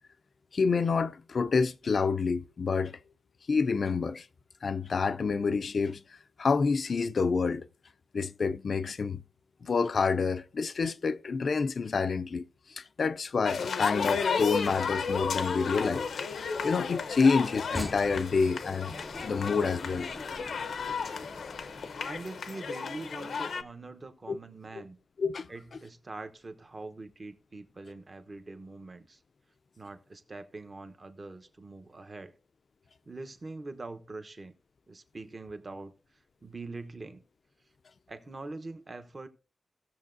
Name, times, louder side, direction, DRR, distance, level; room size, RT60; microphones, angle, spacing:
voice 1, 0.5-3.0 3.5-4.3 4.6-6.0 6.4-7.7 8.1-9.2 9.6-12.4 12.7-16.1 16.6-18.9 19.2-20.1 24.3-24.4 24.8-24.9 25.2-25.5, left 5 dB, 55° left, 0.4 m, -28 dB
sound 1, 13.4-23.6, left 5 dB, 90° left, 0.7 m, -33 dB
sound 2, 14.4-22.3, equal, 5° left, 0.5 m, -46 dB
voice 2, 22.0-25.0 25.5-29.2 29.8-32.3 33.0-34.5 34.9-35.9 36.4-37.2 38.1-39.3, right 2 dB, 35° right, 0.9 m, -43 dB
17.0 x 6.8 x 2.6 m
wide cardioid pair, 130°, 0 cm